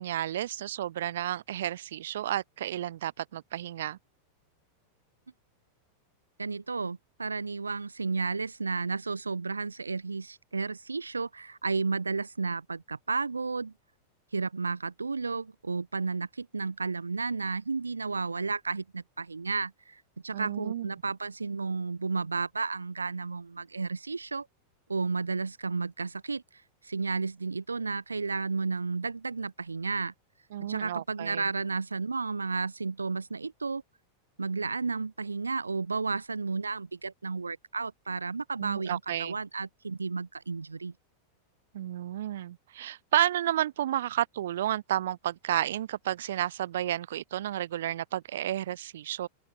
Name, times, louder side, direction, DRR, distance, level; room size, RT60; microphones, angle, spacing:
voice 1, 0.0-4.0 20.3-20.9 30.5-31.4 38.6-39.4 41.7-49.3, right 12 dB, 60° right, 1.1 m, -31 dB
voice 2, 6.4-13.7 14.3-24.5 24.9-26.4 26.8-30.1 30.6-33.8 34.4-40.9, right 4 dB, 80° right, 0.8 m, -32 dB
open air
figure-of-eight pair, 90°, 0 cm